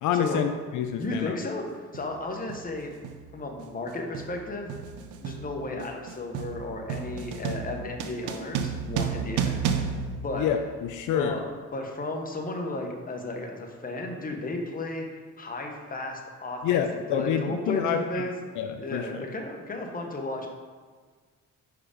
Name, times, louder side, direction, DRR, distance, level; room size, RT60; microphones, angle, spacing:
voice 1, 0.0-1.4 10.4-11.4 16.6-18.3 18.6-19.3, left 8 dB, 80° left, 6 dB, 0.5 m, -27 dB
sound 1, 0.8-1.0 1.9-2.2 2.5-11.0, right 7 dB, 85° right, 0.6 m, -33 dB
voice 2, 1.0-2.9 3.3-4.8 5.2-9.9 10.2-10.5 11.1-11.4 11.7-16.8 17.1-18.3 18.8-20.5, left 2 dB, 30° left, 2 dB, 1.0 m, -34 dB
5.0 x 4.8 x 4.9 m, 1.5 s
cardioid pair, 90°, 30 cm